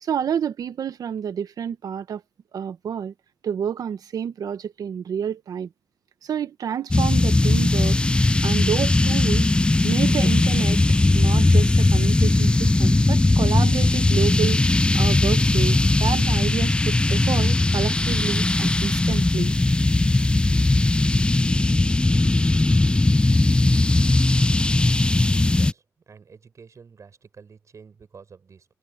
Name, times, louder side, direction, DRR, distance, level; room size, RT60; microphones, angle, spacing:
voice 1, 0.0-2.2 2.5-3.1 3.4-5.7 6.2-8.0 8.4-9.5 9.8-10.8 11.1-19.5, right 8 dB, 75° right, 1.4 m, -29 dB
sound 1, 6.9-25.7, left 2 dB, 15° left, 0.4 m, -19 dB
voice 2, 25.5-28.7, right 5 dB, 55° right, 7.5 m, -48 dB
cardioid pair, 70°, 6 cm